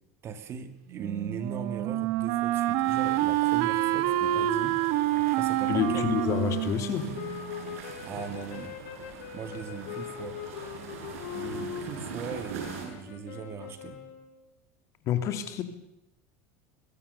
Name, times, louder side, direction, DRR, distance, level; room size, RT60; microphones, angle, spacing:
voice 1, 0.2-4.8 5.3-6.1 8.1-8.8 9.3-10.4 11.3-14.0, right 6 dB, 35° right, 9 dB, 2.4 m, -39 dB
Wind instrument woodwind instrument, 0.9-7.8, right 15 dB, 65° right, 1.5 m, -27 dB
sound 1, 2.8-12.9, right 5 dB, 90° right, 7.3 m, -43 dB
sound 2, 3.7-14.5, left 9 dB, 80° left, 7.5 m, -41 dB
voice 2, 5.7-7.1 15.0-15.6, left 9 dB, 45° left, 9 dB, 2.6 m, -28 dB
23.0 x 21.5 x 6.9 m, 0.86 s
supercardioid pair, 135°, 7 cm